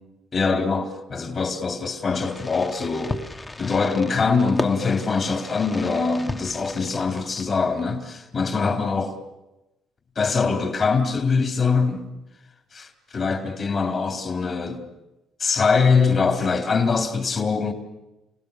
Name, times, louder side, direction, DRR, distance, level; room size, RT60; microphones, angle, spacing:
voice 1, 0.3-3.2 3.6-9.1 10.2-12.1 13.1-14.8 15.4-17.7, left 4 dB, 45° left, 4.1 m, -23 dB
Fireworks, 2.2-7.8, left 2 dB, 20° left, 1.1 m, -35 dB
29.5 x 18.5 x 6.9 m
cardioid pair, 95°, 0 cm